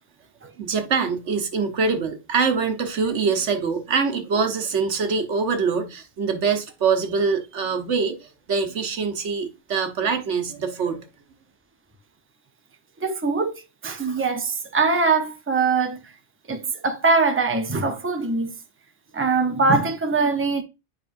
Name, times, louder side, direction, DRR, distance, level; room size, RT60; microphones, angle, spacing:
voice 1, 0.6-11.0, right 5 dB, 85° right, 1.3 m, -24 dB
voice 2, 13.0-16.0 16.5-18.5 19.1-20.6, right 4 dB, 15° right, 0.6 m, -22 dB
7.7 x 5.3 x 2.5 m
omnidirectional pair, 1.2 m